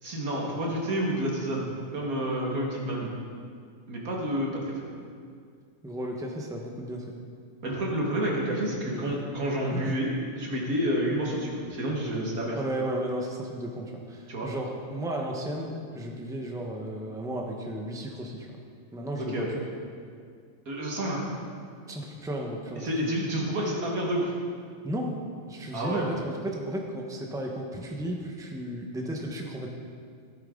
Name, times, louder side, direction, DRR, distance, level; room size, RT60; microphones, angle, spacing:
voice 1, 0.0-3.1 3.9-4.7 7.6-10.1 10.4-12.6 14.3-14.5 19.2-19.5 20.7-21.2 22.8-24.3 25.7-26.2, right 1 dB, 80° right, -2 dB, 2.4 m, -29 dB
voice 2, 5.8-7.2 8.9-9.2 9.7-9.9 12.5-18.6 18.9-19.6 21.9-23.1 24.8-25.1 25.5-29.7, right 1 dB, 5° right, 0 dB, 1.0 m, -34 dB
14.5 x 9.3 x 3.9 m, 2.1 s
omnidirectional pair, 1.5 m